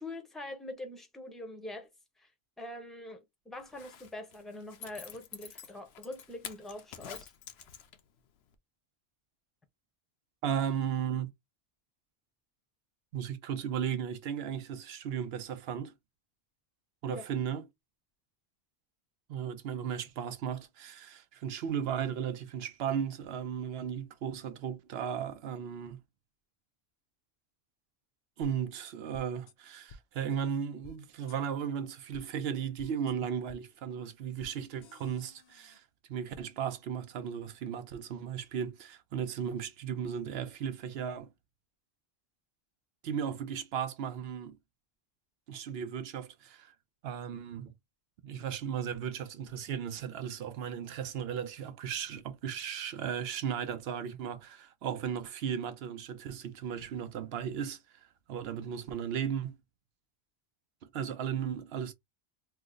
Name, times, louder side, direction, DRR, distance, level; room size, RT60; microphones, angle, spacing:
voice 1, 0.0-1.9 2.2-2.3 2.6-7.3 17.1-17.2, left 1 dB, ahead, 0.6 m, -44 dB
Zipper (clothing), 3.6-8.2 8.5-8.6, left 8 dB, 85° left, 0.9 m, -48 dB
voice 2, 10.4-11.3 13.1-15.9 17.0-17.7 19.3-26.0 28.4-35.8 36.1-41.3 43.0-44.6 45.5-46.7 47.0-47.7 48.2-59.6 60.9-61.9, right 8 dB, 80° right, 0.8 m, -36 dB
sound 1, 28.4-28.5 29.1-29.5 29.9-30.0 30.8-31.0 31.3-31.4 32.1-32.3 32.8-33.1 33.5-33.6 34.4-34.5 34.8-35.8, left 3 dB, 55° left, 0.5 m, -52 dB
3.0 x 2.0 x 3.6 m
omnidirectional pair, 1.0 m